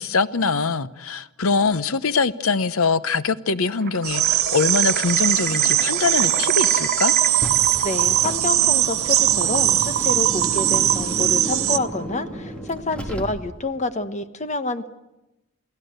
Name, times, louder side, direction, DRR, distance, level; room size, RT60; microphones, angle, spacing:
voice 1, 0.0-7.2, left 4 dB, 80° left, 0.9 m, -23 dB
sound 1, 3.8-12.3, right 6 dB, 45° right, 4.1 m, -30 dB
sound 2, 4.0-11.8, right 13 dB, 90° right, 1.0 m, -20 dB
Car, 7.2-13.8, equal, 5° left, 2.6 m, -33 dB
voice 2, 7.8-14.9, left 3 dB, 35° left, 1.2 m, -28 dB
28.5 x 17.5 x 8.0 m
head